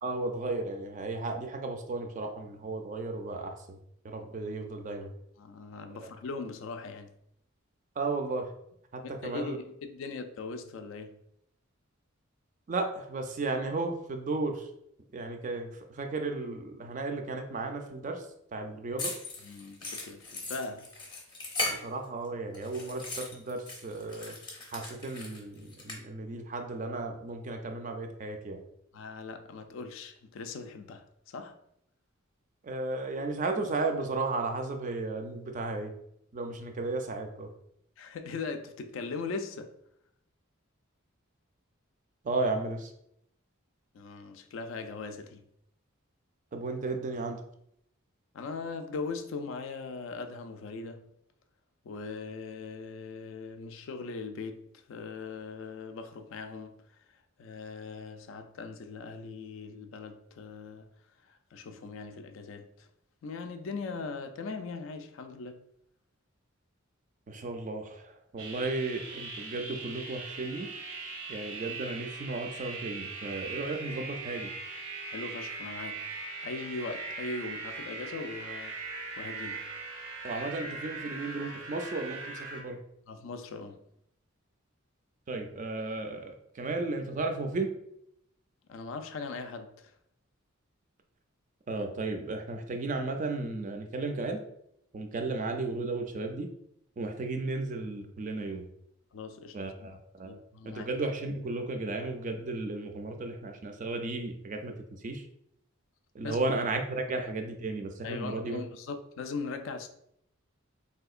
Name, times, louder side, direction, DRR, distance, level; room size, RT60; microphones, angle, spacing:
voice 1, 0.0-3.8 4.0-5.1 8.0-8.5 8.9-9.6 12.7-14.7 15.1-18.3 18.5-19.1 21.8-24.4 24.7-28.6 32.6-35.9 36.3-37.5 42.2-42.9 46.5-47.4 67.3-70.7 71.3-74.5 80.2-82.8 85.3-87.7 91.7-94.4 94.9-96.5 97.0-98.7 99.5-100.4 100.7-105.3 106.1-108.6, right 3 dB, 40° right, 0.3 m, -34 dB
voice 2, 5.4-7.1 9.0-11.2 19.4-20.9 28.9-31.6 38.0-39.7 43.9-45.4 48.3-51.0 51.8-56.8 57.4-60.9 61.3-62.9 63.2-65.6 75.1-76.0 76.4-78.8 79.2-79.6 83.1-83.8 88.7-89.9 99.1-99.9 100.2-100.9 106.2-106.4 108.0-109.9, left 4 dB, 65° left, 0.3 m, -40 dB
sound 1, 19.0-22.3 22.5-26.0, left 2 dB, 20° left, 0.6 m, -38 dB
sound 2, 68.4-82.6, right 3 dB, 80° right, 0.7 m, -40 dB
3.5 x 2.7 x 2.4 m
head